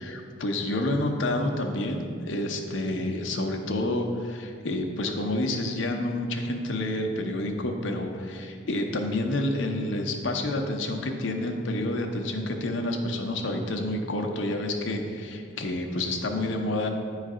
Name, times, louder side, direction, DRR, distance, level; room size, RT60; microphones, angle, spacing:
voice 1, 0.0-16.9, left 1 dB, 80° left, 3 dB, 0.7 m, -29 dB
9.2 x 3.2 x 4.9 m, 2.4 s
head